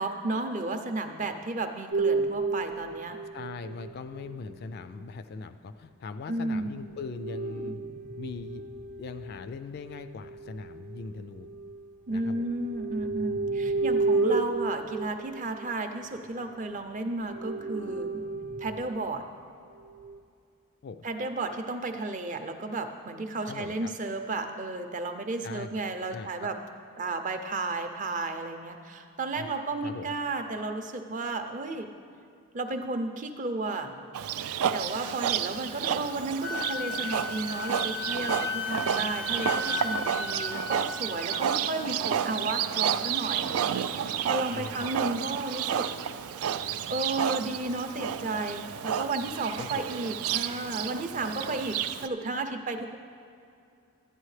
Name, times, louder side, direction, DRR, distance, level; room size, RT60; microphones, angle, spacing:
voice 1, 0.0-3.2 6.3-6.8 12.1-18.1 18.6-19.2 21.0-26.6 27.0-31.9 32.5-34.0 34.7-45.9 46.9-53.0, right 2 dB, 35° right, 6 dB, 0.5 m, -33 dB
sound 1, 1.9-5.1 6.8-11.9 12.3-16.7 17.1-18.9 19.7-20.2, right 3 dB, 70° right, 0.8 m, -32 dB
voice 2, 3.3-7.8 8.2-8.6 9.0-11.5 12.1-12.5 20.8-21.0 23.5-23.9 25.4-25.7 26.1-26.5 29.4-29.5 29.8-30.1 44.5-45.1 49.6-49.8, left 4 dB, 45° left, 11 dB, 0.3 m, -40 dB
Livestock farm animals working animals, 34.1-52.1, right 8 dB, 85° right, 0.3 m, -31 dB
Wind instrument woodwind instrument, 36.4-41.6, left 4 dB, 90° left, 0.7 m, -35 dB
12.5 x 9.7 x 3.2 m, 2.5 s
head